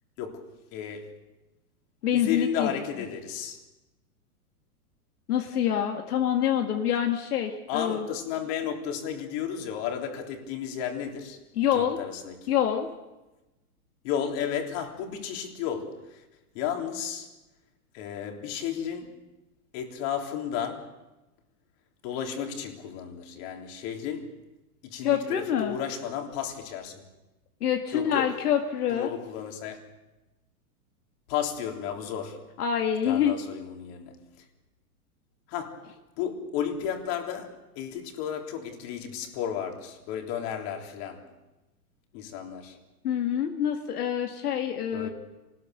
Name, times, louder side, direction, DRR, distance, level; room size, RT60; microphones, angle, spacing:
voice 1, 0.2-1.1 2.1-3.6 7.7-11.4 11.7-12.5 14.0-16.2 16.5-17.3 17.9-19.1 19.7-21.0 22.0-24.3 24.8-27.0 27.9-28.4 28.9-29.8 31.3-32.5 33.1-34.2 35.5-35.8 36.2-41.3 42.1-42.8 44.9-45.1, left 8 dB, 45° left, 3.6 m, -33 dB
voice 2, 2.0-2.7 5.3-8.1 11.6-12.0 12.5-12.9 25.0-25.8 27.6-29.1 32.6-33.3 43.0-45.1, left 9 dB, 80° left, 2.1 m, -26 dB
27.0 x 19.5 x 6.8 m
hypercardioid pair, 145°, 45 cm